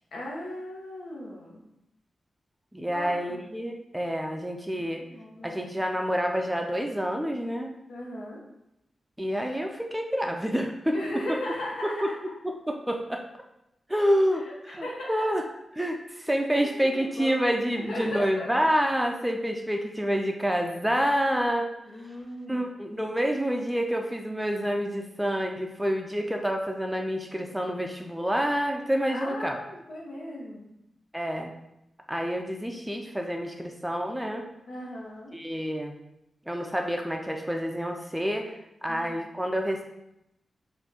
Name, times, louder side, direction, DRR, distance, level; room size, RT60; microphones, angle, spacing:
voice 1, 0.1-1.6 2.9-3.4 4.7-5.5 7.9-8.4 10.9-12.1 14.4-15.2 16.2-17.4 17.8-18.5 21.8-22.7 29.1-30.7 34.7-35.4 38.9-39.1, left 1 dB, 90° left, -3 dB, 1.2 m, -37 dB
voice 2, 2.7-5.0 5.4-7.7 9.2-11.0 11.8-11.9 12.4-13.2 13.9-15.4 15.8-21.7 22.5-29.6 31.1-31.5 32.1-34.4 35.3-35.9 36.5-38.6 38.8-39.8, equal, 5° right, 2 dB, 0.4 m, -28 dB
4.3 x 2.6 x 4.2 m, 0.86 s
wide cardioid pair, 125°, 0 cm